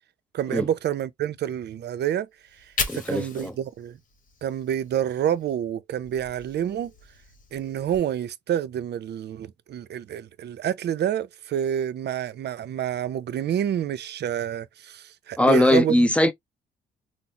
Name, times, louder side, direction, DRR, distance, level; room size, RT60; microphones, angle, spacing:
voice 1, 0.3-2.3 2.9-4.0 4.4-6.9 7.5-16.1, right 10 dB, 60° right, 0.5 m, -28 dB
Fire, 2.4-5.6 5.9-8.0, left 4 dB, 40° left, 1.0 m, -37 dB
voice 2, 2.9-3.5 15.4-16.3, left 1 dB, 5° left, 0.7 m, -20 dB
3.9 x 2.0 x 2.8 m
cardioid pair, 90°, 20 cm